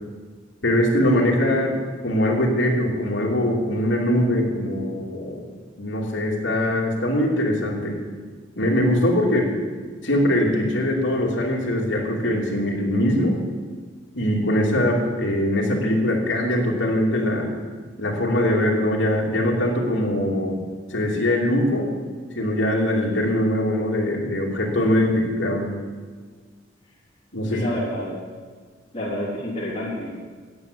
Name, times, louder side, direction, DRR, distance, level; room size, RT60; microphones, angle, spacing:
voice 1, 0.6-1.8 2.0-5.4 5.8-8.0 8.6-9.5 10.0-13.4 14.1-17.5 18.0-20.6 20.9-21.9 22.3-25.7 27.3-27.6, left 1 dB, 75° left, -2 dB, 2.6 m, -22 dB
voice 2, 27.5-28.1 28.9-30.1, left 1 dB, 30° left, -10 dB, 3.5 m, -28 dB
9.5 x 8.9 x 8.0 m, 1.5 s
head